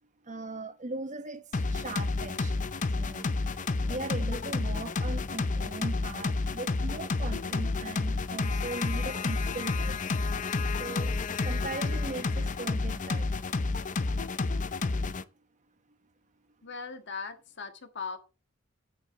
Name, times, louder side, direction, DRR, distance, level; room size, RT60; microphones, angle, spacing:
voice 1, 0.2-2.6 2.9-10.1 10.7-11.2 11.4-13.3, right 2 dB, 40° right, 1.2 m, -39 dB
sound 1, 1.5-15.2, left 3 dB, 40° left, 0.6 m, -30 dB
voice 2, 16.6-18.2, left 5 dB, 60° left, 1.5 m, -39 dB
10.0 x 8.4 x 3.7 m
head